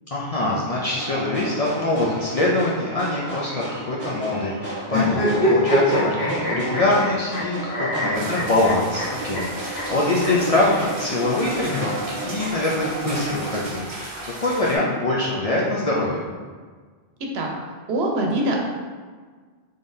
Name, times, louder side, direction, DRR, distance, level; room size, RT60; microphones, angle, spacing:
voice 1, 0.1-16.2, left 2 dB, 50° left, -5 dB, 0.5 m, -24 dB
sound 1, 0.9-13.6, right 2 dB, 15° left, 1.4 m, -34 dB
sound 2, 4.9-7.4 7.7-9.0 9.3-9.4 9.7-9.8 10.2-10.3 11.4-12.4, equal, 75° left, 1.2 m, -24 dB
sound 3, 8.1-14.8, right 1 dB, 50° right, 0.8 m, -36 dB
voice 2, 17.9-18.6, right 1 dB, 80° right, 0 dB, 0.9 m, -23 dB
3.8 x 3.4 x 2.6 m, 1.5 s
omnidirectional pair, 1.1 m